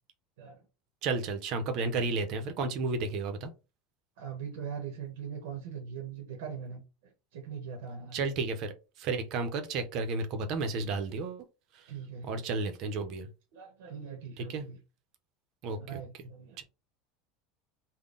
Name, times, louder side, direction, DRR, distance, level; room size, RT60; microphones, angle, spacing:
voice 1, 1.0-3.5 8.1-8.7 9.0-11.4 12.2-13.3 14.4-14.6 15.6-16.0 16.6-16.7, right 3 dB, 40° right, 0.6 m, -32 dB
voice 2, 4.2-6.8 7.3-8.3 11.9-12.4 13.5-14.8 15.7-16.6, right 7 dB, 80° right, 0.9 m, -41 dB
3.7 x 2.1 x 3.7 m
cardioid pair, 180°, 0 cm